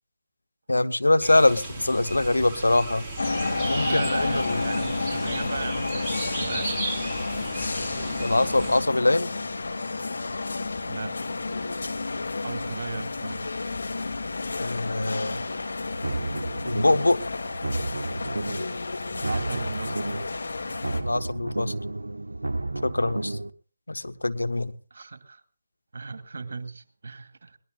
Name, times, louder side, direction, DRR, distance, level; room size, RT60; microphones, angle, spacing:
voice 1, 0.7-3.1 3.7-4.6 8.2-9.3 14.6-15.4 16.6-17.2 21.0-21.7 22.8-23.4 23.9-24.7, left 2 dB, 80° left, 12 dB, 1.1 m, -23 dB
sound 1, 1.2-8.8, right 2 dB, 5° right, 4.5 m, -35 dB
sound 2, 3.2-21.0, left 3 dB, 65° left, 2.7 m, -31 dB
voice 2, 3.8-6.7 10.9-11.1 12.4-13.5 19.1-20.0 24.9-25.4 25.9-27.6, right 4 dB, 55° right, 9 dB, 2.1 m, -36 dB
sound 3, 15.9-17.2 17.5-18.8 19.1-20.4 20.7-23.5, right 2 dB, 80° right, 0.9 m, -32 dB
22.0 x 19.0 x 2.5 m, 0.41 s
figure-of-eight pair, 150°, 0 cm